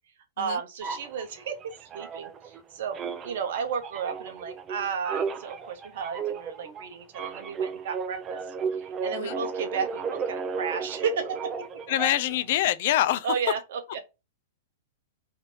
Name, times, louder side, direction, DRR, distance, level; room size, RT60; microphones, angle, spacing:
voice 1, 0.4-8.4 8.8-11.8 13.2-14.1, right 6 dB, 65° right, 0.7 m, -33 dB
sound 1, 0.8-2.6 2.9-12.4, right 5 dB, 30° right, 0.4 m, -34 dB
voice 2, 11.9-13.3, left 13 dB, 60° left, 0.3 m, -25 dB
2.7 x 2.5 x 3.0 m
hypercardioid pair, 110°, 0 cm